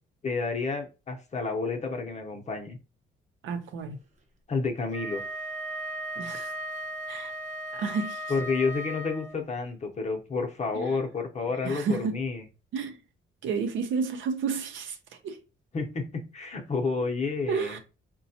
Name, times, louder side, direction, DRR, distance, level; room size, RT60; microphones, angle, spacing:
voice 1, 0.2-2.8 4.5-5.2 8.3-12.4 15.7-17.8, left 4 dB, 35° left, 0.8 m, -30 dB
voice 2, 3.4-4.0 6.2-6.5 7.1-7.3 7.7-8.2 10.7-11.0 11.6-12.2 12.7-13.0 13.4-15.0 15.2-15.4 17.5-17.8, right 5 dB, 75° right, 0.6 m, -31 dB
Wind instrument woodwind instrument, 4.8-9.5, right 1 dB, 35° right, 0.8 m, -36 dB
4.0 x 2.2 x 2.7 m
cardioid pair, 90°, 20 cm